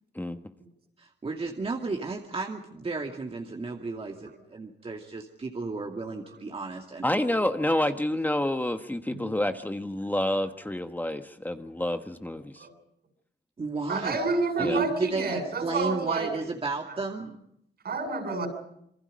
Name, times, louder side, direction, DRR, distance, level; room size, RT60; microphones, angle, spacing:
voice 1, 1.0-7.0 7.7-7.8 13.6-14.2 14.6-17.4, right 3 dB, 35° right, 2 dB, 2.4 m, -33 dB
voice 2, 7.0-12.6 14.6-14.8, left 1 dB, 10° left, 7 dB, 1.3 m, -28 dB
voice 3, 13.9-16.3 17.8-18.5, right 3 dB, 65° right, 6 dB, 7.8 m, -29 dB
27.5 x 23.0 x 5.2 m, 0.76 s
cardioid pair, 90°, 18 cm